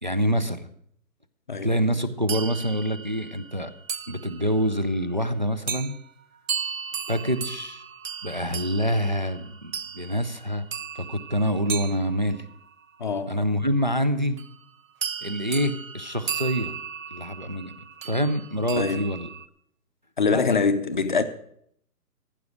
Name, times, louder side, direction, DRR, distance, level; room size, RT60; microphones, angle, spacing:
voice 1, 0.0-0.7 1.6-3.7 4.1-6.0 7.1-7.8 8.2-10.6 11.0-12.4 13.3-14.4 15.2-16.7 17.1-17.7 18.0-19.3 20.3-20.4, equal, 30° right, 0.4 m, -26 dB
sound 1, 2.3-4.8 5.7-6.0 6.5-12.8 14.4-14.6 15.0-19.5, right 7 dB, 55° right, 0.9 m, -36 dB
voice 2, 13.0-13.4 18.7-19.1 20.2-21.2, left 5 dB, 30° left, 0.6 m, -24 dB
14.5 x 6.0 x 7.8 m
hypercardioid pair, 155°, 49 cm